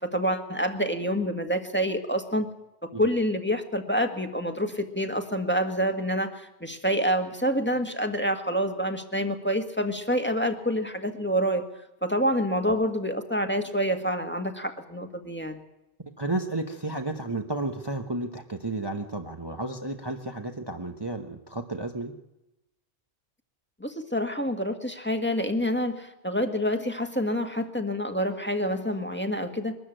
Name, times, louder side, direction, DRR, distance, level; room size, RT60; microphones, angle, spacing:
voice 1, 0.0-2.5 2.8-11.6 12.0-15.6 23.8-29.8, equal, 10° left, 5 dB, 1.7 m, -27 dB
voice 2, 16.2-22.1, right 2 dB, 25° right, 4 dB, 1.2 m, -32 dB
23.0 x 13.0 x 9.0 m, 0.93 s
omnidirectional pair, 1.1 m